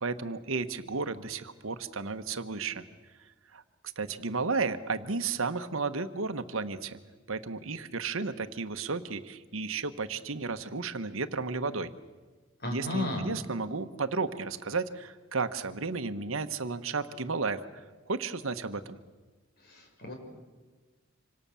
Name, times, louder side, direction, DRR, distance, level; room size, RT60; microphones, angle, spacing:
voice 1, 0.0-2.8 3.5-3.6 4.0-7.0 7.3-11.9 12.7-19.0, right 4 dB, 70° right, 10 dB, 1.2 m, -33 dB
voice 2, 12.6-13.3 19.6-20.1, left 2 dB, 50° left, 2 dB, 5.9 m, -33 dB
26.5 x 25.5 x 7.0 m, 1.3 s
head